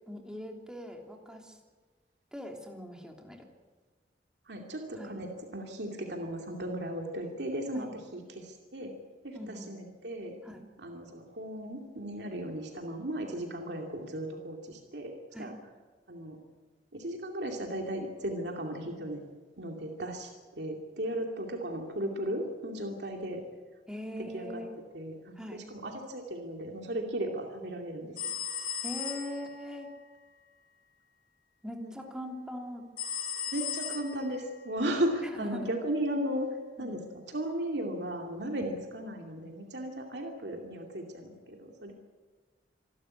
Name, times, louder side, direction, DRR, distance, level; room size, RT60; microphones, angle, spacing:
voice 1, 0.1-1.6 2.3-3.5 5.0-5.1 7.7-7.9 9.3-9.7 10.4-10.6 15.3-15.5 23.9-24.8 25.3-25.6 28.8-29.9 31.6-32.9 35.2-35.7 36.8-37.0 38.4-38.6, left 1 dB, 5° right, 1 dB, 3.1 m, -41 dB
voice 2, 4.5-5.3 5.5-8.9 9.2-10.4 10.8-15.5 16.1-16.4 16.9-19.2 19.6-20.3 20.6-23.4 24.3-24.6 24.9-25.4 25.7-28.1 31.8-31.9 33.5-36.5 36.8-41.9, right 1 dB, 75° right, 1 dB, 2.5 m, -36 dB
sound 1, 28.2-29.6 33.0-34.4, left 8 dB, 55° left, 5.2 m, -36 dB
26.5 x 12.5 x 9.8 m, 1.4 s
head